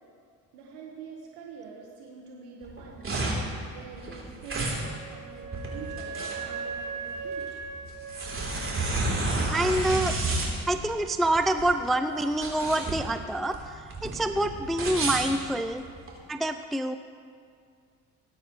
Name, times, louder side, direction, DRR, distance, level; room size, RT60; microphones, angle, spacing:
voice 1, 0.5-3.2 3.5-7.5, right 5 dB, 80° right, -2 dB, 1.5 m, -45 dB
sound 1, 2.6-16.1, right 2 dB, 30° right, 3.7 m, -31 dB
Wind instrument woodwind instrument, 4.8-9.5, right 5 dB, 50° right, 1.4 m, -39 dB
voice 2, 9.5-10.2 10.7-13.6 14.0-15.8 16.3-16.9, right 1 dB, ahead, 8 dB, 0.5 m, -26 dB
20.0 x 9.1 x 3.2 m, 2.2 s
supercardioid pair, 65°, 40 cm